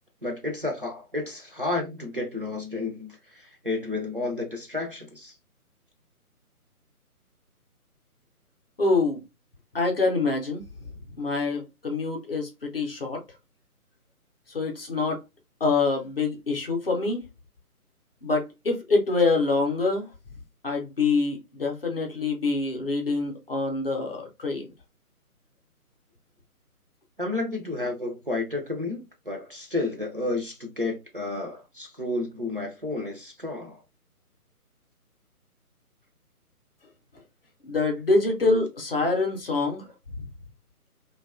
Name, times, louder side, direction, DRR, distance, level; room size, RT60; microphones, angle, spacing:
voice 1, 0.2-5.3 27.2-33.8, left 2 dB, 40° right, 0.4 m, -31 dB
voice 2, 8.8-9.2 9.7-10.6 11.2-13.2 14.5-15.2 15.6-17.2 18.2-20.1 20.6-24.6 37.6-39.9 40.2-40.3, left 3 dB, 40° left, 0.6 m, -25 dB
2.5 x 2.3 x 2.3 m
figure-of-eight pair, 145°, 45 cm